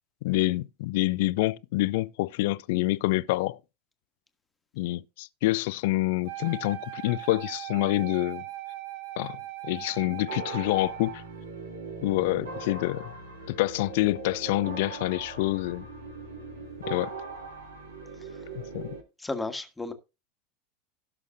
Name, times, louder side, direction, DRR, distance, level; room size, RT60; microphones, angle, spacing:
voice 1, 0.2-3.6 4.8-8.4 9.2-11.2 12.0-13.1 13.5-15.9 16.9-17.1 18.7-18.9, left 20 dB, 55° left, 0.4 m, -27 dB
Wind instrument woodwind instrument, 6.2-11.3, right 15 dB, 55° right, 1.3 m, -39 dB
sound 1, 10.3-19.0, right 3 dB, 75° right, 2.8 m, -40 dB
voice 2, 19.2-19.9, left 2 dB, 10° left, 1.4 m, -33 dB
17.5 x 6.3 x 2.5 m
figure-of-eight pair, 80°, 0 cm